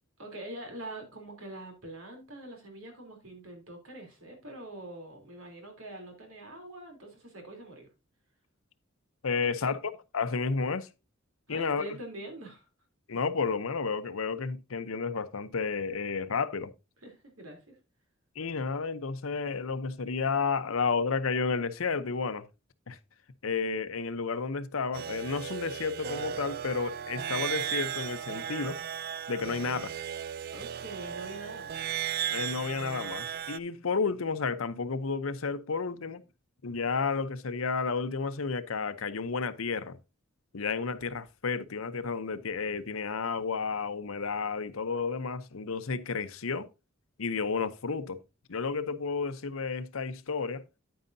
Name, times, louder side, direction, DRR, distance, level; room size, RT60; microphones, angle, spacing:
voice 1, 0.2-7.9 9.6-9.7 11.5-12.7 17.0-17.8 30.5-31.9, right 1 dB, 85° right, 3.4 m, -44 dB
voice 2, 9.2-10.9 11.5-11.8 13.1-16.7 18.4-22.5 22.9-23.0 23.4-28.8 29.3-29.9 32.3-36.2 36.6-40.0 40.5-46.7 47.2-48.2 48.5-50.6, left 5 dB, 85° left, 0.8 m, -31 dB
sound 1, 24.9-33.6, right 9 dB, 50° right, 0.4 m, -36 dB
9.6 x 9.1 x 2.7 m
head